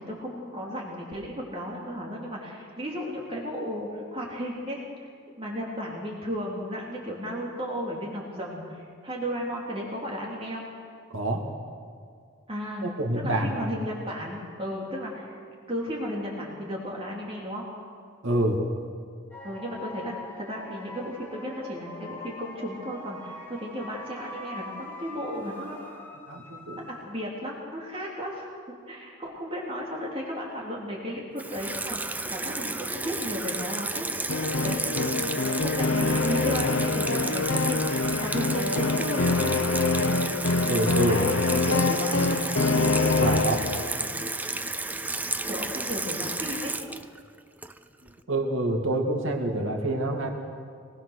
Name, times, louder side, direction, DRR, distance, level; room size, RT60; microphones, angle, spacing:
voice 1, 0.0-4.8 5.4-10.6 12.5-15.4 15.7-17.6 19.4-25.8 26.8-28.5 28.9-34.1 34.6-39.5 41.0-42.4 45.5-46.8, equal, 30° right, -3 dB, 3.0 m, -34 dB
voice 2, 11.1-11.5 12.8-13.7 18.2-18.6 26.3-26.8 40.7-41.2 43.2-43.6 48.3-50.3, right 1 dB, 70° right, 1 dB, 2.3 m, -26 dB
sound 1, 19.3-27.4, left 1 dB, 10° left, 1.9 m, -43 dB
Water tap faucet / Sink (filling or washing), 31.4-48.1, right 2 dB, 10° right, 0.5 m, -32 dB
sound 2, 34.3-44.1, left 3 dB, 75° left, 0.9 m, -25 dB
24.5 x 20.5 x 6.5 m, 2.2 s
head